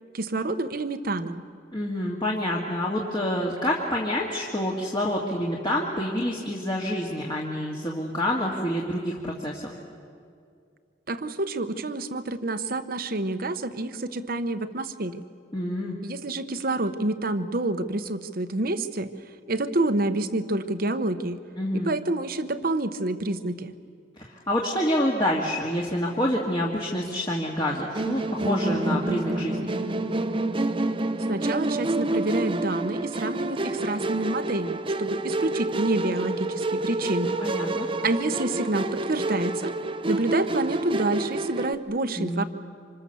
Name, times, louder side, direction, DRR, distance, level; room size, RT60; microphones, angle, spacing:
voice 1, 0.1-1.4 11.1-15.2 16.0-19.1 19.5-21.4 21.7-23.8 31.3-37.4 38.0-39.8 40.1-42.4, right 2 dB, 50° right, 10 dB, 1.0 m, -28 dB
voice 2, 1.7-9.6 15.5-15.9 21.6-21.9 24.2-29.7 37.4-37.9 42.2-42.5, left 1 dB, 25° left, -3 dB, 2.0 m, -27 dB
Musical instrument, 27.9-41.7, right 2 dB, 25° right, 0.7 m, -28 dB
26.5 x 26.0 x 7.0 m, 2.3 s
head